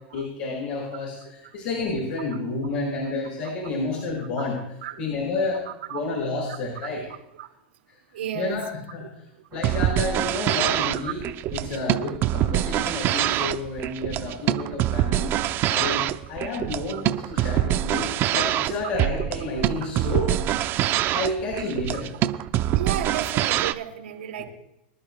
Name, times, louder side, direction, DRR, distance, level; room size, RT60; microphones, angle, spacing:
voice 1, 0.1-5.6 5.9-7.1 8.3-8.6 8.9-9.1 9.5-11.2 11.5-15.4 15.7-20.5 21.1-22.1 24.4-24.5, left 3 dB, 60° left, -3 dB, 6.1 m, -30 dB
voice 2, 8.1-8.6 13.4-13.5 16.9-17.0 22.7-24.4, right 10 dB, 90° right, 1 dB, 3.2 m, -32 dB
sound 1, 9.5-23.7, right 13 dB, 40° right, 0.6 m, -25 dB
24.5 x 11.5 x 2.3 m, 0.81 s
supercardioid pair, 130°, 6 cm